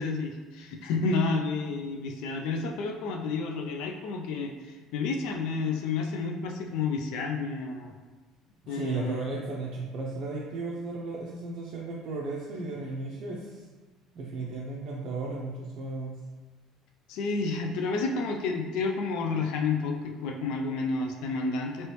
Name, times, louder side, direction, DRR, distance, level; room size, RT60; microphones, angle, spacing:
voice 1, 0.0-7.9 8.7-9.2 17.1-21.9, left 4 dB, 75° left, 3 dB, 0.3 m, -30 dB
voice 2, 8.6-13.7 14.1-16.2, right 3 dB, 55° right, -3 dB, 0.5 m, -35 dB
3.1 x 2.9 x 3.0 m, 1.3 s
supercardioid pair, 105°, 0 cm